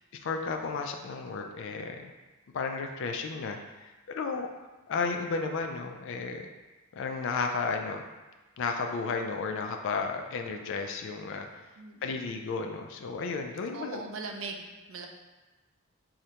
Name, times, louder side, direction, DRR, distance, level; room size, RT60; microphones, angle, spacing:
voice 1, 0.0-2.1 2.5-4.5 4.9-6.5 6.9-8.0 8.6-11.5 12.0-14.0, left 4 dB, 55° left, 4 dB, 0.3 m, -33 dB
voice 2, 11.8-12.1 13.7-15.1, right 4 dB, 60° right, 3 dB, 0.4 m, -40 dB
4.7 x 2.1 x 2.8 m, 1.2 s
head